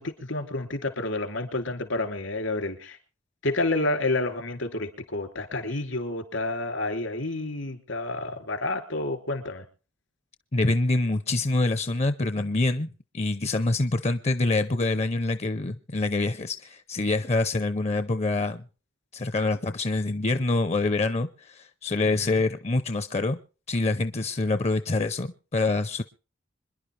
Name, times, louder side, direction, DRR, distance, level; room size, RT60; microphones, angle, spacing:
voice 1, 0.0-3.0 3.4-9.6 22.0-22.4, left 2 dB, 75° left, 7 dB, 3.0 m, -29 dB
voice 2, 10.5-18.6 19.1-23.4 23.7-26.0, left 2 dB, 35° left, 11 dB, 0.6 m, -26 dB
26.0 x 11.0 x 3.3 m, 0.36 s
head